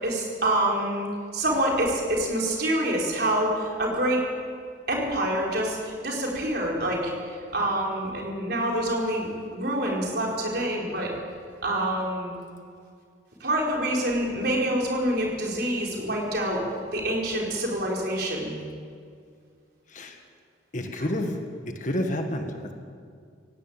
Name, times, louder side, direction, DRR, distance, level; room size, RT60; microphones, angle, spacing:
voice 1, 0.0-4.2 4.9-11.1 11.6-12.3 13.4-16.6 16.9-18.5 21.0-21.1, right 1 dB, 55° right, -2 dB, 4.5 m, -26 dB
voice 2, 20.7-21.4 21.8-22.7, left 1 dB, 40° left, 4 dB, 1.7 m, -29 dB
18.0 x 17.0 x 8.9 m, 2.2 s
head